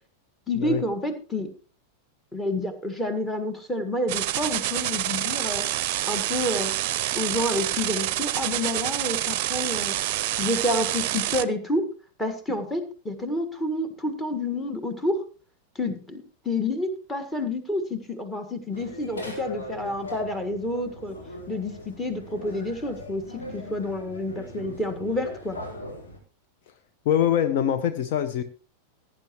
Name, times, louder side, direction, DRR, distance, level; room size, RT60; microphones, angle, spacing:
voice 1, 0.5-1.5 2.3-6.7 7.1-9.9 10.4-11.9 12.2-15.3 15.7-21.2 21.5-23.2 23.5-25.6, left 1 dB, 10° left, 8 dB, 1.7 m, -29 dB
sound 1, 4.1-11.4, right 14 dB, 45° right, 0.6 m, -27 dB
sound 2, 18.7-26.2, left 1 dB, 70° left, 3.8 m, -39 dB
voice 2, 27.0-28.4, left 10 dB, 50° left, 9 dB, 0.8 m, -23 dB
17.0 x 9.9 x 3.0 m, 0.36 s
figure-of-eight pair, 90°, 0 cm